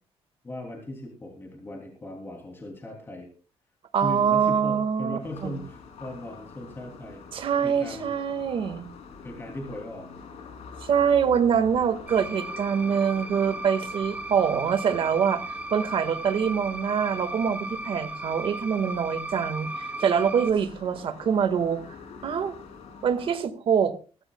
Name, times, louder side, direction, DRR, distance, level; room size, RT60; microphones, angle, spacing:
voice 1, 0.4-3.3 4.0-8.1 9.2-10.1, left 1 dB, 20° left, 1 dB, 3.0 m, -38 dB
voice 2, 3.9-5.6 7.3-8.9 10.8-22.0 22.2-22.6 23.0-24.0, right 7 dB, 55° right, 10 dB, 1.7 m, -25 dB
sound 1, 5.2-23.4, left 5 dB, 80° left, 3.2 m, -46 dB
sound 2, 12.1-20.5, right 2 dB, 15° right, 1.2 m, -36 dB
24.0 x 13.0 x 2.3 m, 0.35 s
cardioid pair, 150°, 11 cm